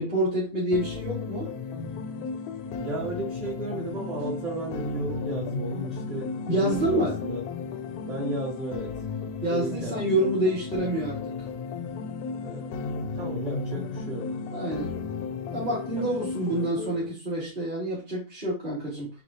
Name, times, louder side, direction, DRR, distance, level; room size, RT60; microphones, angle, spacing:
voice 1, 0.0-1.5 6.5-7.2 9.4-11.2 14.5-15.0 15.5-19.1, right 1 dB, 25° right, -8 dB, 1.7 m, -27 dB
sound 1, 0.7-16.7, left 4 dB, 70° left, 1.0 m, -34 dB
voice 2, 2.8-7.4 8.1-9.0 9.5-10.2 12.4-12.9 13.2-14.4 15.9-17.1, right 1 dB, 60° right, -9 dB, 2.2 m, -35 dB
7.0 x 2.4 x 2.7 m, 0.32 s
omnidirectional pair, 1.8 m